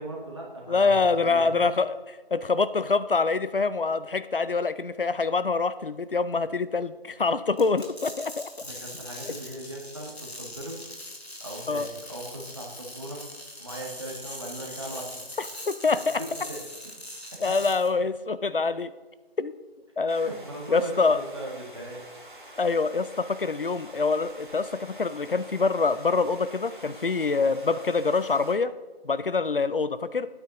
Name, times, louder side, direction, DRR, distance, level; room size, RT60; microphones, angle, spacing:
voice 1, 0.0-1.6 8.6-10.8 11.4-13.2 13.6-15.2 16.2-16.6 20.0-22.6, right 1 dB, 30° right, -2 dB, 1.7 m, -39 dB
voice 2, 0.7-1.9 2.3-8.5 11.7-11.9 15.7-16.2 17.4-18.9 19.4-19.5 20.0-20.3 20.7-21.2 22.6-28.7 29.0-30.3, left 4 dB, 60° left, 14 dB, 0.6 m, -25 dB
sound 1, 7.6-17.9, left 1 dB, 90° left, 2.8 m, -41 dB
sound 2, 20.1-28.6, right 1 dB, 50° right, 1.7 m, -47 dB
11.0 x 9.0 x 3.0 m, 1.2 s
figure-of-eight pair, 175°, 31 cm